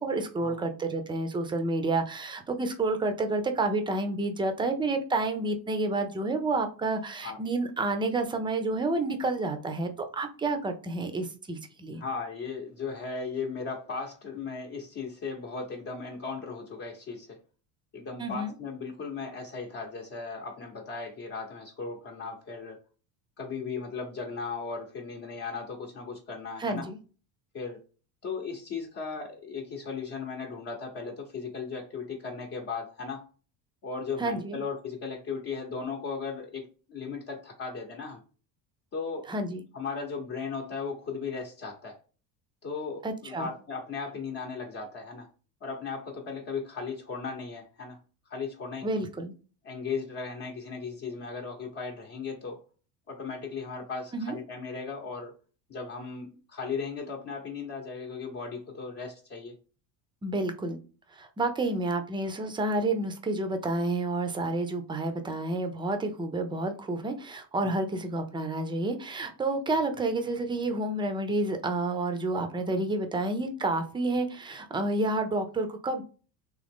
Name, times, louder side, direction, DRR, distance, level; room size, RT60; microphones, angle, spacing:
voice 1, 0.0-12.0 18.2-18.5 26.6-27.0 34.2-34.6 39.3-39.6 43.0-43.5 48.8-49.3 54.1-54.4 60.2-60.8 61.1-76.0, right 2 dB, 10° right, 7 dB, 0.5 m, -29 dB
voice 2, 12.0-17.4 17.9-22.8 23.4-26.9 27.5-27.8 28.2-33.2 33.8-38.2 38.9-39.3 39.7-42.0 42.6-45.3 45.6-48.0 48.3-48.9 49.6-52.6 53.1-55.3 55.7-59.6 67.6-67.7, left 5 dB, 35° left, -1 dB, 0.9 m, -36 dB
3.8 x 3.0 x 3.5 m, 0.36 s
cardioid pair, 140°, 38 cm